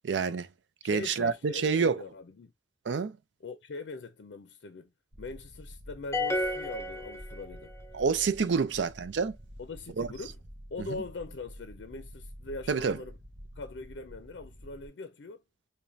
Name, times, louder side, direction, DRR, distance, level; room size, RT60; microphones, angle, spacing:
voice 1, 0.0-0.5 0.8-2.0 2.9-3.2 7.9-9.4 10.0-10.1 10.9-11.0 12.7-13.0, right 5 dB, 85° right, 0.4 m, -28 dB
voice 2, 0.8-2.5 3.4-4.9 5.2-7.7 9.6-10.4 10.7-13.2 13.5-15.4, left 3 dB, 80° left, 0.5 m, -42 dB
sound 1, 5.1-14.9, equal, 35° right, 0.7 m, -49 dB
sound 2, 6.1-7.8, left 1 dB, 15° left, 0.5 m, -32 dB
4.9 x 2.2 x 2.6 m
head